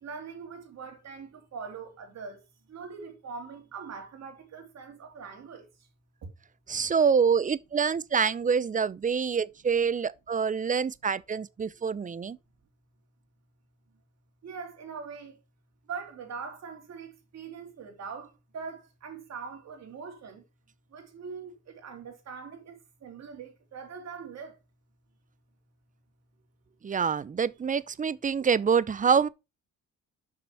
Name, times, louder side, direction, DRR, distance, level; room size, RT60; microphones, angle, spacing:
voice 1, 0.0-2.4 2.7-5.7 14.4-15.3 15.9-20.4 20.9-24.5, right 5 dB, 60° right, 3.1 m, -42 dB
voice 2, 6.7-12.4 26.8-29.3, right 6 dB, 25° right, 0.6 m, -26 dB
6.4 x 5.9 x 5.6 m
cardioid pair, 90°, 30 cm